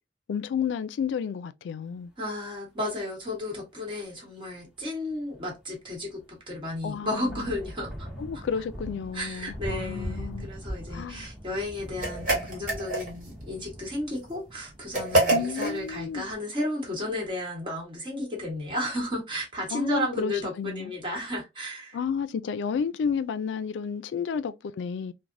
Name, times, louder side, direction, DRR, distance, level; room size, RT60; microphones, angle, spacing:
voice 1, 0.3-2.1 6.8-7.5 8.2-10.5 10.9-11.3 15.3-16.3 19.7-20.9 21.9-25.1, left 6 dB, 80° left, 0.3 m, -31 dB
voice 2, 2.2-8.1 8.3-8.4 9.1-22.0, left 1 dB, 30° right, 1.2 m, -33 dB
sound 1, 5.1-5.2 5.4-5.6 5.9-6.4 6.9-16.4, equal, 5° right, 0.7 m, -41 dB
sound 2, 12.0-13.3 14.9-15.8, right 2 dB, 45° right, 1.1 m, -25 dB
3.2 x 2.1 x 2.5 m
head